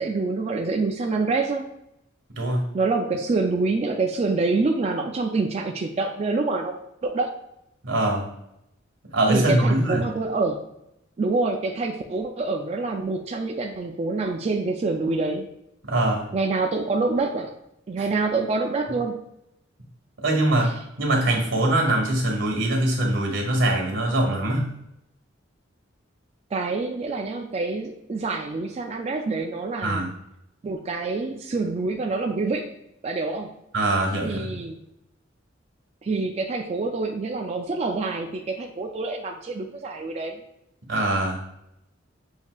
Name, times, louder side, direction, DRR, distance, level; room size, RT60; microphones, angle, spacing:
voice 1, 0.0-1.7 2.7-7.3 9.3-10.7 11.2-15.5 16.3-17.5 17.9-19.3 20.6-20.7 26.5-30.1 30.6-32.7 33.0-33.6 34.2-34.8 36.0-40.4, right 3 dB, 35° right, 2 dB, 0.3 m, -26 dB
voice 2, 7.8-8.3 9.1-10.0 15.8-16.3 20.2-20.7 21.0-24.7 29.8-30.1 33.7-34.6 40.9-41.4, right 1 dB, 85° right, 1 dB, 1.5 m, -22 dB
7.1 x 2.8 x 2.3 m, 0.83 s
head